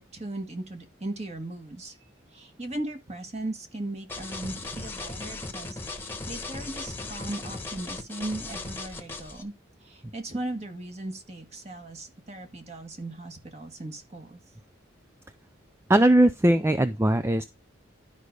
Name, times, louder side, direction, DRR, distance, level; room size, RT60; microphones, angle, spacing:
voice 1, 0.0-2.0 2.3-9.5 9.8-14.4, right 2 dB, 35° right, 1.8 m, -37 dB
sound 1, 4.1-9.4, left 3 dB, 10° left, 1.3 m, -37 dB
voice 2, 15.9-17.4, right 1 dB, 15° right, 0.4 m, -20 dB
11.5 x 5.2 x 4.7 m
head